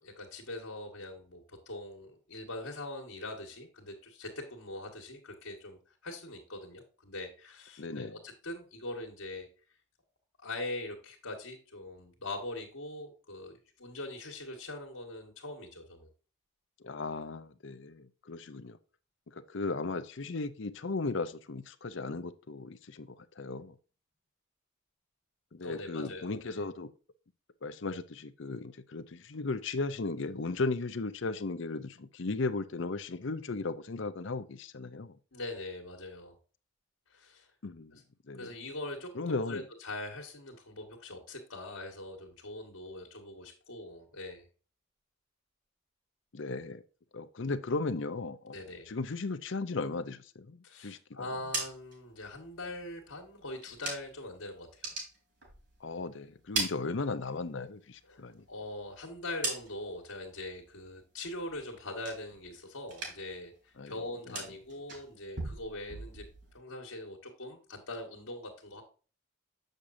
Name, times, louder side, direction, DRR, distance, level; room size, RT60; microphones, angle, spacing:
voice 1, 0.0-9.5 10.4-16.1 25.6-26.5 35.3-36.3 37.1-37.5 37.9-38.0 38.4-44.5 48.5-48.9 50.6-54.9 58.1-66.3 66.5-68.8, left 2 dB, 80° left, 1.7 m, -42 dB
voice 2, 7.8-8.2 16.8-18.8 19.3-23.8 25.5-26.9 27.6-35.2 37.6-37.9 38.3-38.5 39.1-39.6 46.3-46.8 47.1-51.3 55.8-58.5 63.8-64.4, left 3 dB, 65° left, 0.6 m, -36 dB
sound 1, 51.2-54.3 54.6-56.0 56.3-57.6 57.9-60.1 60.4-60.9 61.2-62.6 62.8-63.4 63.7-66.6, right 3 dB, 55° right, 4.2 m, -41 dB
7.4 x 6.6 x 2.6 m
head